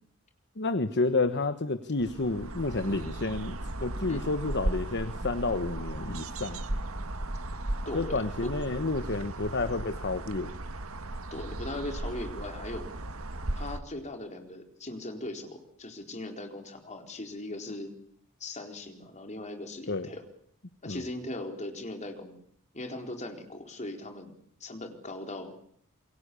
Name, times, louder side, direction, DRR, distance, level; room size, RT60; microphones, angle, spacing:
voice 1, 0.6-6.8 7.9-10.5 19.9-20.1 20.9-21.0, left 3 dB, 55° left, 10 dB, 1.3 m, -30 dB
sound 1, 2.0-13.8, right 1 dB, 75° right, 1.9 m, -36 dB
voice 2, 7.8-8.5 11.3-12.9 13.6-17.9 18.4-20.2 20.8-22.4 22.7-25.6, left 1 dB, 35° left, 4 dB, 4.2 m, -39 dB
28.0 x 23.0 x 7.0 m, 0.65 s
head